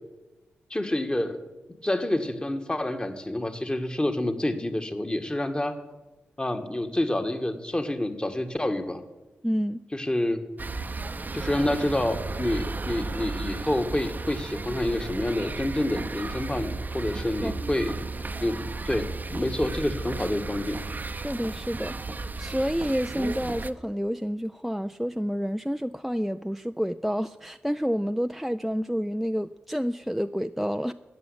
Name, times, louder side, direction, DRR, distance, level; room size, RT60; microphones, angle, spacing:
voice 1, 0.7-1.4 1.8-5.8 6.4-9.0 9.9-10.4 11.3-17.9 18.4-20.8, left 1 dB, 20° left, 7 dB, 1.7 m, -28 dB
voice 2, 9.4-9.8 17.4-17.5 21.2-30.9, equal, ahead, 8 dB, 0.4 m, -29 dB
sound 1, 10.6-23.7, right 3 dB, 40° right, 0.7 m, -34 dB
12.5 x 7.7 x 10.0 m, 1.1 s
supercardioid pair, 45°, 5 cm